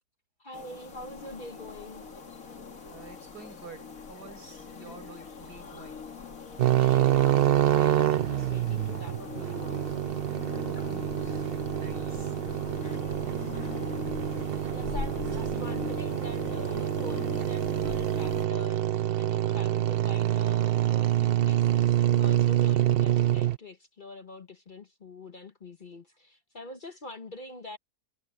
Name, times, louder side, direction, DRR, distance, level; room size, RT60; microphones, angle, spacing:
voice 1, 0.4-2.1 4.9-5.1 6.7-10.0 13.2-13.3 14.7-27.8, left 2 dB, 35° left, 1.1 m, -44 dB
sound 1, 0.5-18.5, left 5 dB, 60° left, 2.4 m, -40 dB
voice 2, 2.9-6.0 10.7-12.4 13.4-14.1, right 3 dB, 85° right, 6.4 m, -49 dB
sound 2, 6.6-23.6, right 12 dB, 60° right, 0.6 m, -26 dB
omnidirectional pair, 1.6 m